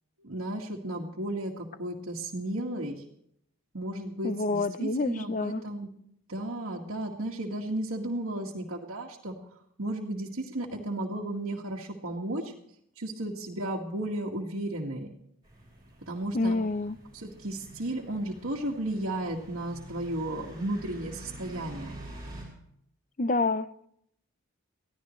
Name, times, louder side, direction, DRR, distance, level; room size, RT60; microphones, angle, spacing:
voice 1, 0.2-3.0 3.7-5.9 6.3-9.3 9.8-12.5 13.0-15.1 16.1-16.6 17.1-22.0, right 1 dB, 80° right, -3 dB, 1.8 m, -34 dB
voice 2, 4.2-5.6 16.3-16.9 23.2-23.9, left 2 dB, 35° left, 14 dB, 0.6 m, -28 dB
sound 1, 15.4-22.4, right 1 dB, 20° right, 5.8 m, -47 dB
23.0 x 15.5 x 3.2 m, 0.71 s
head